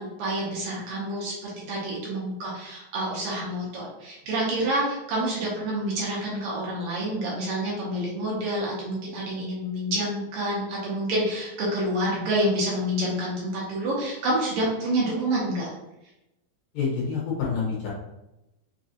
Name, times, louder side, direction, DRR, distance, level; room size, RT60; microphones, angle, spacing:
voice 1, 0.0-15.7, right 1 dB, 70° right, -5 dB, 2.3 m, -28 dB
voice 2, 16.7-17.9, left 5 dB, 65° left, -5 dB, 2.4 m, -27 dB
6.1 x 2.3 x 2.7 m, 0.92 s
omnidirectional pair, 4.5 m